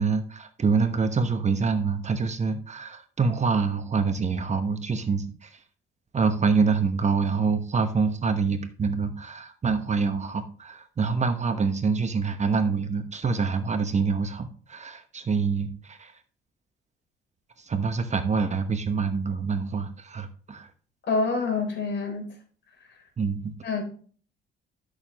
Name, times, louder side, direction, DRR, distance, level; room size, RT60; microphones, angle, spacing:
voice 1, 0.0-5.6 6.1-16.1 17.6-20.7 23.2-23.5, right 5 dB, 35° right, 8 dB, 1.1 m, -26 dB
voice 2, 21.1-22.3 23.6-23.8, left 4 dB, 60° left, 3 dB, 3.7 m, -26 dB
11.0 x 6.6 x 3.0 m, 0.42 s
cardioid pair, 90°, 20 cm